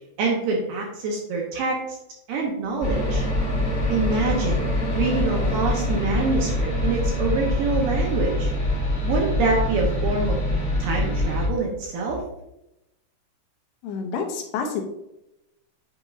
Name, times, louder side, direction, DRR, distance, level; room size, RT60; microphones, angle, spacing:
voice 1, 0.2-1.8 2.3-3.2 3.9-4.7 4.9-8.5 9.0-10.4 10.8-12.2, right 3 dB, 75° right, 0 dB, 2.1 m, -25 dB
sound 1, 2.8-11.5, left 1 dB, 50° left, 1.4 m, -24 dB
voice 2, 13.8-14.8, left 5 dB, 80° left, 2 dB, 2.7 m, -28 dB
8.9 x 5.1 x 2.5 m, 0.86 s
omnidirectional pair, 5.0 m